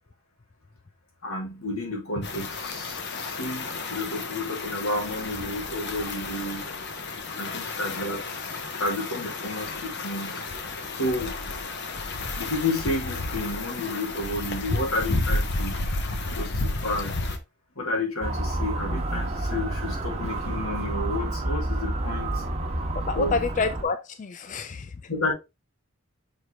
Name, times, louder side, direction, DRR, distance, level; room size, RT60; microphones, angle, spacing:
voice 1, 1.2-6.6 7.3-8.4 8.8-10.3 10.6-11.3 12.3-15.8 16.3-17.1 17.8-22.4 23.1-23.4 25.1-25.3, left 2 dB, 85° left, 2.8 m, -31 dB
sound 1, 2.2-17.4, left 2 dB, 50° left, 1.0 m, -32 dB
Motor vehicle (road) / Siren, 18.2-23.8, right 1 dB, 30° right, 1.3 m, -29 dB
voice 2, 22.9-24.9, left 4 dB, 35° left, 0.4 m, -28 dB
6.4 x 4.8 x 3.4 m
head